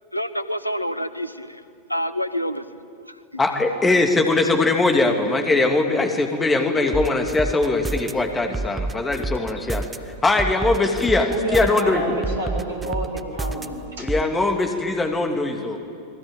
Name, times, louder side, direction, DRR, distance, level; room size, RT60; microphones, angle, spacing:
voice 1, 0.1-1.6 1.9-2.7 3.0-3.4, equal, 90° left, 13 dB, 1.0 m, -28 dB
voice 2, 3.4-9.8 10.2-12.0 14.0-15.8, left 3 dB, 15° left, 5 dB, 2.4 m, -21 dB
sound 1, 6.9-8.1 8.5-10.0 10.4-11.8 12.2-13.7 14.1-14.2, right 3 dB, 10° right, 1.1 m, -28 dB
voice 3, 11.3-14.1 15.7-15.8, right 1 dB, 65° right, 3 dB, 6.1 m, -29 dB
29.0 x 21.0 x 8.9 m, 2.5 s
figure-of-eight pair, 90°, 0 cm